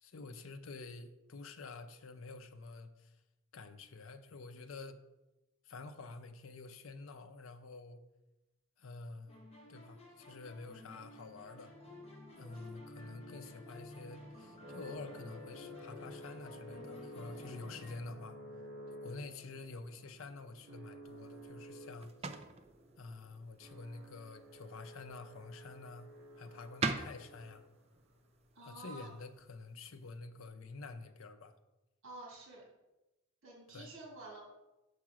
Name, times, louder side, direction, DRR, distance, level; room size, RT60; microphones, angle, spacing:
voice 1, 0.0-3.2 3.5-5.0 5.6-8.0 8.8-9.3 9.7-11.7 12.4-18.4 19.0-22.1 23.0-26.1 26.4-27.7 28.6-31.6 33.7-33.9, left 3 dB, 75° left, 9 dB, 0.6 m, -48 dB
sound 1, 9.3-18.0, left 2 dB, 30° left, 1.2 m, -53 dB
voice 2, 10.7-11.1 12.4-12.7 28.5-29.1 32.0-32.6 33.4-34.4, right 2 dB, 90° right, -3 dB, 2.5 m, -51 dB
sound 2, 11.8-28.0, equal, 50° right, 1.8 m, -53 dB
sound 3, 21.0-30.2, right 4 dB, 30° right, 0.4 m, -45 dB
5.8 x 4.8 x 6.2 m, 1.0 s
head